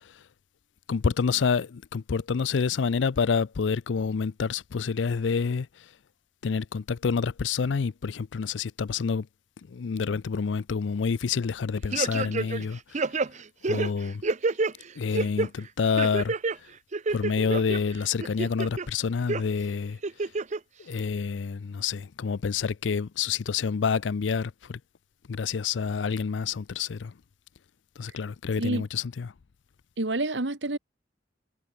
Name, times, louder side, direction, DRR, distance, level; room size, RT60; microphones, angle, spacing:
voice 1, 0.9-5.7 6.4-9.3 9.7-12.8 13.6-14.2 15.0-16.3 17.1-20.0 20.9-24.8 25.3-27.1 28.0-29.3, left 5 dB, 85° left, 0.5 m, -28 dB
sound 1, 11.9-12.7 12.9-14.7 15.1-15.5 16.0-16.6 16.9-17.8 18.2-18.9 19.3-19.4 20.0-20.6 21.0-21.1, right 3 dB, 40° right, 0.7 m, -28 dB
voice 2, 30.0-30.8, right 2 dB, 75° right, 1.7 m, -28 dB
head